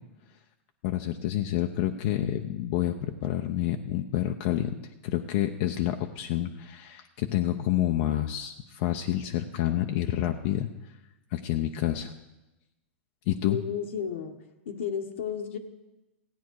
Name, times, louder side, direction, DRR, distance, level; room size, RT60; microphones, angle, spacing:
voice 1, 0.8-4.8 5.0-10.7 11.3-12.1 13.3-13.6, left 12 dB, 55° left, 4 dB, 0.8 m, -28 dB
voice 2, 13.5-14.4 14.6-15.6, left 7 dB, 80° left, 3 dB, 1.4 m, -32 dB
15.5 x 9.3 x 4.8 m, 1.0 s
hypercardioid pair, 125°, 7 cm